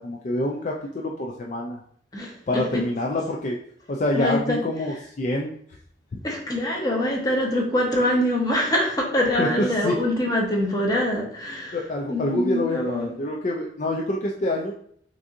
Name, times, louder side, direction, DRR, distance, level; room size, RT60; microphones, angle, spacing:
voice 1, 0.0-1.8 2.5-3.6 3.9-5.5 9.4-10.0 11.7-14.7, left 1 dB, 45° left, -1 dB, 0.4 m, -26 dB
voice 2, 2.1-2.8 4.1-4.6 6.2-11.8 12.1-13.1, left 1 dB, 20° left, -1 dB, 0.9 m, -24 dB
6.0 x 2.7 x 2.6 m, 0.62 s
head